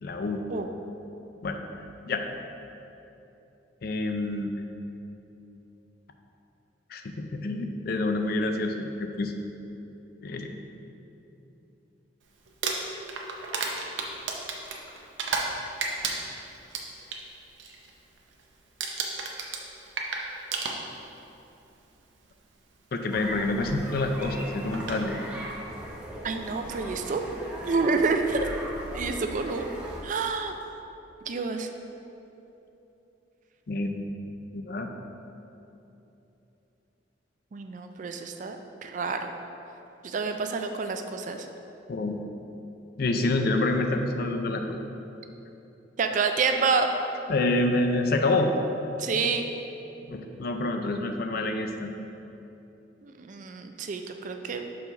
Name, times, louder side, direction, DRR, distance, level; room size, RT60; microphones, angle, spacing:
voice 1, 0.0-0.4 1.4-1.6 2.1-2.2 3.8-4.5 6.9-9.3 10.2-10.5 22.9-25.2 33.7-34.0 34.5-34.9 41.9-42.2 43.0-44.8 47.3-48.5 50.1-51.9, left 2 dB, 55° left, 5 dB, 0.4 m, -27 dB
Crumpling crinkling, 12.5-15.5 15.8-17.2 17.6-17.9 18.2-18.5 18.8-21.2 22.1-22.2 24.2-24.3 24.7-25.0, right 4 dB, 90° right, 0.7 m, -32 dB
sound 1, 23.1-30.0, equal, 5° right, 0.7 m, -39 dB
voice 2, 26.2-27.2 27.6-28.5 28.9-29.7 30.0-30.7 31.2-31.7 37.5-38.6 38.8-39.3 40.0-41.5 46.0-46.9 49.0-49.4 53.0-54.6, right 4 dB, 45° right, 6 dB, 0.4 m, -28 dB
4.8 x 4.0 x 5.7 m, 2.9 s
head